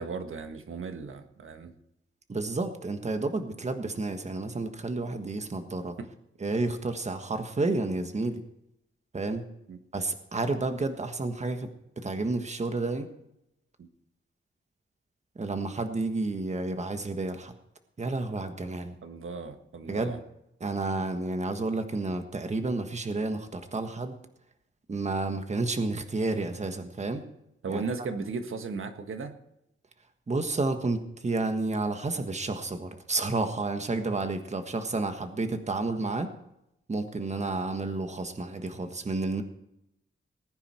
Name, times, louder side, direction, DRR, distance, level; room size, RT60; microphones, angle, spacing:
voice 1, 0.0-1.7 6.0-6.1 9.7-9.8 13.8-13.9 19.0-20.2 27.6-29.3, right 4 dB, 80° right, 7 dB, 1.6 m, -36 dB
voice 2, 2.3-6.0 6.4-8.4 9.1-9.4 9.9-13.1 15.3-17.5 18.0-19.0 19.9-20.2 20.6-24.2 24.9-27.3 27.7-27.8 30.3-36.3 36.9-39.4, right 3 dB, 35° right, 7 dB, 1.4 m, -31 dB
19.5 x 9.8 x 4.4 m, 0.81 s
wide cardioid pair, 135°, 21 cm